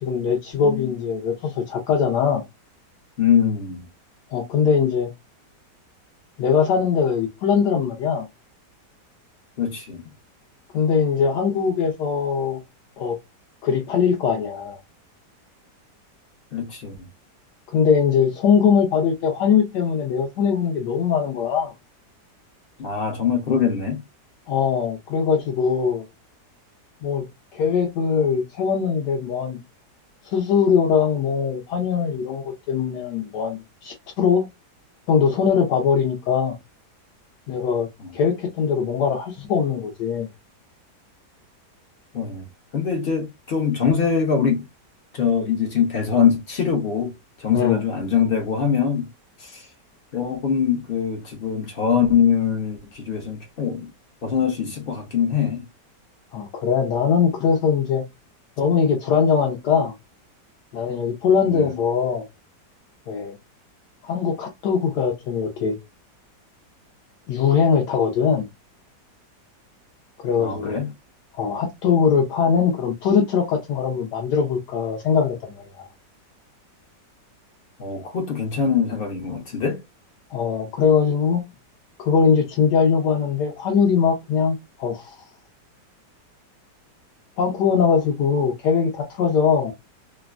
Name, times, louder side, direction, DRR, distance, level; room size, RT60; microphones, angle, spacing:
voice 1, 0.0-2.4 4.3-5.1 6.4-8.3 10.7-12.6 13.0-13.2 13.6-14.8 17.7-21.7 24.5-26.1 27.0-27.2 27.5-29.6 30.2-34.4 35.1-36.5 37.5-37.9 38.1-40.3 47.5-47.8 56.3-58.0 58.6-59.9 60.7-62.2 63.1-63.3 64.0-65.8 67.3-68.5 70.2-70.8 71.4-75.9 80.3-81.4 82.0-85.2 87.4-89.7, left 6 dB, 80° left, 1.2 m, -21 dB
voice 2, 0.5-1.0 3.2-3.9 9.6-10.0 16.5-17.1 22.8-24.0 38.0-38.1 42.1-42.4 42.7-44.7 45.1-47.1 47.4-49.1 49.4-49.7 50.1-53.9 54.2-55.7 61.4-61.8 70.4-70.9 77.8-79.8, left 7 dB, 60° left, 0.6 m, -23 dB
3.2 x 2.1 x 2.3 m
omnidirectional pair, 1.8 m